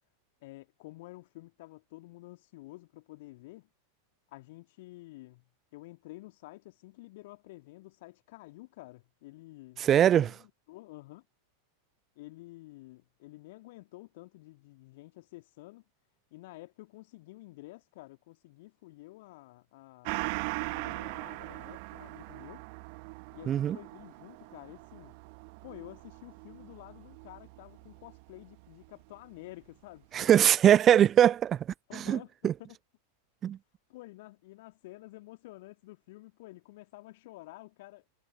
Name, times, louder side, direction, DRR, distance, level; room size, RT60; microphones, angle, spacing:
voice 1, 0.4-3.7 4.3-11.3 12.2-15.8 16.3-20.3 20.6-22.6 23.3-25.2 25.6-30.3 31.9-32.8 33.9-38.1, left 20 dB, 50° left, 2.3 m, -50 dB
voice 2, 9.8-10.3 23.5-23.8 30.1-31.7 31.9-32.2 32.4-32.5 33.4-33.6, right 10 dB, 25° right, 0.6 m, -22 dB
Gong, 20.0-29.0 29.4-29.5, right 32 dB, 45° right, 1.6 m, -41 dB
figure-of-eight pair, 90°, 0 cm